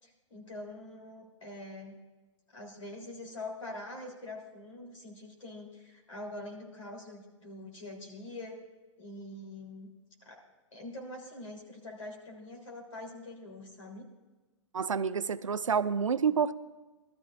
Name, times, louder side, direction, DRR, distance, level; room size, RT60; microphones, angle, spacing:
voice 1, 0.0-2.0 2.5-8.6 9.0-9.9 10.2-10.4 10.7-14.1, left 2 dB, 75° left, 0 dB, 3.3 m, -44 dB
voice 2, 14.7-16.6, right 6 dB, 85° right, 14 dB, 0.5 m, -28 dB
20.0 x 13.0 x 2.5 m, 1.2 s
figure-of-eight pair, 125°, 16 cm